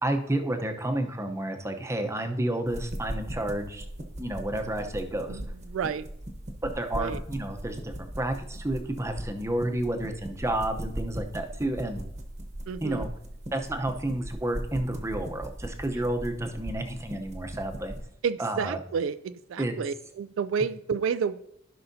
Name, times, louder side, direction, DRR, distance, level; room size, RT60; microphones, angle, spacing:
voice 1, 0.0-3.8 4.2-5.4 6.6-12.1 12.8-13.1 13.5-17.9 18.4-18.8 19.6-19.7, right 1 dB, 15° right, 4 dB, 0.8 m, -30 dB
sound 1, 2.7-18.0, right 1 dB, 35° right, 1.1 m, -39 dB
voice 2, 5.3-6.1 6.9-7.2 12.7-13.1 18.2-21.4, right 6 dB, 75° right, 13 dB, 0.3 m, -30 dB
15.5 x 5.6 x 2.7 m, 0.74 s
head